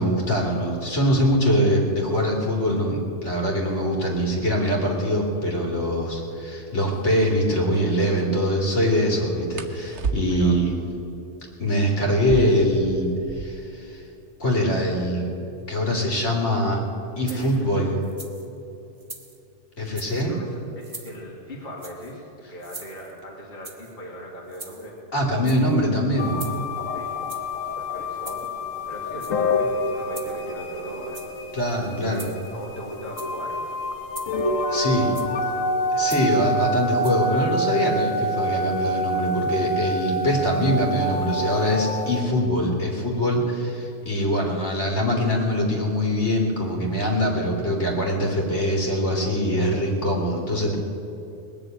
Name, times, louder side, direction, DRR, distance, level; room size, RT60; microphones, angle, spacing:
voice 1, 0.0-10.8 11.6-14.0 14.4-15.3 15.7-16.8 17.2-17.9 19.8-20.4 25.1-26.4 31.5-32.3 34.7-35.1 35.9-50.8, equal, 65° left, -1 dB, 3.1 m, -23 dB
sound 1, 6.8-7.1 9.5-10.6 12.1-13.7 14.0-14.1 14.3-14.9 15.6-18.1 19.1-19.4 19.8-20.3 20.6-21.4, right 5 dB, 60° right, 1.2 m, -34 dB
voice 2, 10.3-10.6 17.3-17.9 20.0-25.0 26.9-27.3 27.7-28.5 28.9-31.2 32.0-33.6 34.0-35.2, equal, 45° left, -4 dB, 2.3 m, -40 dB
sound 2, 17.3-17.6 18.0-18.5 19.0-19.4 19.9-20.3 20.8-21.2 21.8-22.2 22.6-23.2 23.6-24.0 24.5-25.0 25.3-25.8 26.4-26.8 27.3-27.6 28.2-28.6 29.1-29.6 30.1-30.6 31.0-31.5 32.1-32.5 33.0-33.4 34.1-34.5 35.1-35.5 36.1-36.4 37.0-37.2, right 2 dB, 25° right, 1.2 m, -42 dB
sound 3, 26.2-42.2, equal, 85° left, 1.6 m, -27 dB
20.0 x 7.1 x 9.2 m, 2.8 s
omnidirectional pair, 1.3 m